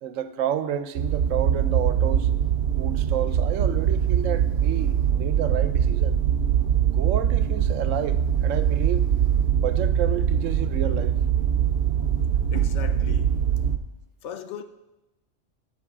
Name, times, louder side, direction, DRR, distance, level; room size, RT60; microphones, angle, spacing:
voice 1, 0.0-2.3 2.8-6.2 6.9-9.0 9.5-11.1, right 9 dB, 80° right, 1.0 m, -30 dB
sound 1, 1.0-13.8, right 9 dB, 55° right, 0.6 m, -22 dB
voice 2, 12.5-13.4 14.2-14.6, left 8 dB, 70° left, 0.9 m, -38 dB
11.0 x 4.4 x 6.1 m
omnidirectional pair, 1.3 m